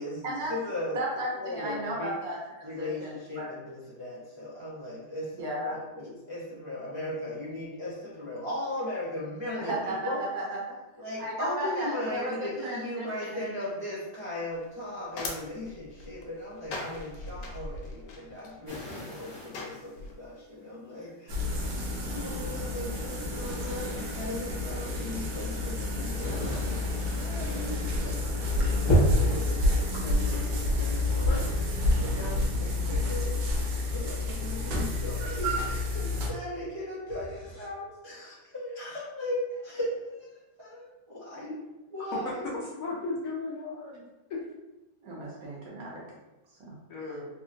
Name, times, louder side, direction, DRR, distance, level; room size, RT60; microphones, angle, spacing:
voice 1, 0.0-1.0 1.3-2.1 2.6-10.2 11.0-21.5 22.1-41.5 41.9-42.5, left 1 dB, 35° right, -11 dB, 0.4 m, -38 dB
voice 2, 0.9-2.4 2.7-3.5 5.4-5.8 9.6-10.6 11.2-13.6 45.0-46.0 46.7-46.8 47.0-47.2, right 1 dB, 65° right, -3 dB, 1.1 m, -34 dB
sound 1, 14.5-20.1, left 2 dB, 85° left, 1.2 m, -41 dB
sound 2, 18.6-19.7 20.4-20.5 21.5-22.3 22.6-24.5 25.2-27.9 28.2-28.5 28.8-29.5 30.1-30.9 31.2-32.2, right 1 dB, 35° left, 0.4 m, -32 dB
sound 3, 21.3-36.3, left 2 dB, 90° right, 1.3 m, -29 dB
voice 3, 42.5-44.0 44.3-44.4 46.9-47.3, left 3 dB, 70° left, -5 dB, 0.8 m, -35 dB
3.5 x 2.1 x 2.5 m, 1.1 s
omnidirectional pair, 1.8 m